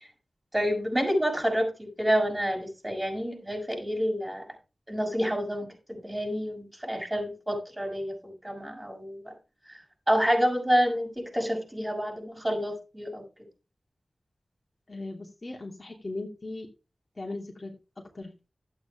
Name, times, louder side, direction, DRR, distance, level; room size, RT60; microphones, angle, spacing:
voice 1, 0.5-4.4 4.9-5.7 6.0-9.3 9.7-9.8 10.1-13.2, equal, 15° right, 1 dB, 6.5 m, -28 dB
voice 2, 14.9-16.7 17.2-18.5, left 2 dB, 40° left, 0 dB, 2.8 m, -39 dB
12.0 x 8.9 x 3.6 m, 0.30 s
cardioid pair, 50°, 0 cm